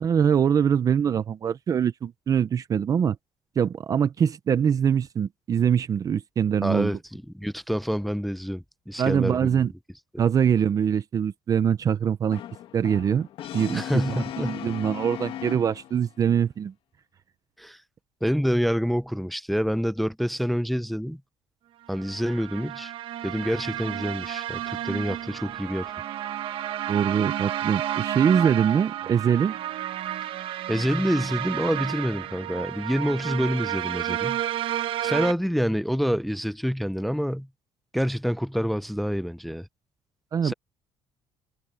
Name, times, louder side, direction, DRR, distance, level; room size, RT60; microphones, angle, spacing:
voice 1, 0.0-3.2 3.6-6.9 9.0-9.7 10.2-12.4 12.7-13.3 13.5-16.7 26.9-29.6 40.3-40.5, right 8 dB, 35° right, 0.7 m, -23 dB
voice 2, 6.6-9.7 13.7-14.6 17.6-17.8 18.2-21.2 21.9-22.9 23.2-25.9 30.7-34.4 35.0-37.5 37.9-39.7 40.4-40.5, equal, ahead, 0.5 m, -27 dB
Brass instrument, 12.3-16.1, left 11 dB, 65° left, 1.3 m, -37 dB
sound 1, 21.9-35.3, right 12 dB, 60° right, 1.1 m, -31 dB
cardioid pair, 145°, 10 cm